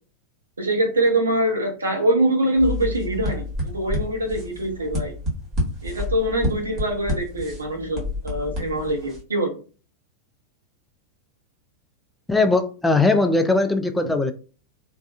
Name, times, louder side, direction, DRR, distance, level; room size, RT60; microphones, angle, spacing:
voice 1, 0.6-3.4 3.7-5.1 5.8-9.5, right 1 dB, 75° right, 0.9 m, -23 dB
sound 1, 2.6-9.2, left 1 dB, 30° right, 1.4 m, -29 dB
voice 2, 12.3-14.3, left 3 dB, 5° left, 0.4 m, -19 dB
3.3 x 2.5 x 2.3 m
figure-of-eight pair, 90°, 0 cm